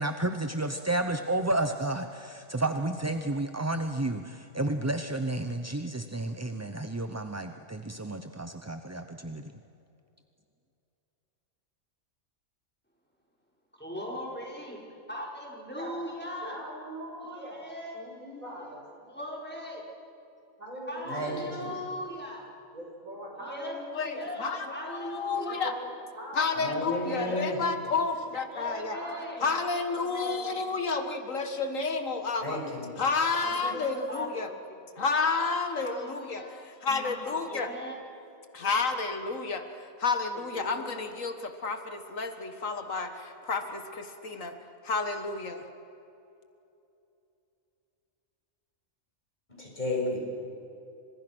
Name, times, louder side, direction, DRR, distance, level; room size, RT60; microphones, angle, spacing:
voice 1, 0.0-9.5, right 2 dB, 15° right, 7 dB, 0.6 m, -31 dB
voice 2, 13.8-14.8 15.1-16.5 17.3-18.4 19.1-19.8 20.9-22.5 23.4-25.7 27.0-28.2 28.5-29.5 33.6-33.7 34.1-34.5 35.8-36.5 37.5-38.0, equal, 5° left, -3 dB, 5.6 m, -39 dB
voice 3, 16.4-17.6 17.9-18.8 20.6-21.3 22.7-24.3 25.3-27.0 28.9-30.8 33.3-33.9 36.9-37.4 40.3-40.9, equal, 80° right, -1 dB, 6.8 m, -42 dB
voice 4, 21.1-21.7 26.5-27.6 32.4-32.9 49.5-50.3, left 1 dB, 30° left, -2 dB, 6.6 m, -32 dB
voice 5, 23.9-25.7 26.3-29.0 29.4-32.6 33.0-34.5 35.0-36.4 36.8-37.7 38.5-39.7 40.0-44.6 44.8-45.6, left 4 dB, 75° left, 7 dB, 1.9 m, -30 dB
29.5 x 26.0 x 6.2 m, 2.7 s
omnidirectional pair, 1.4 m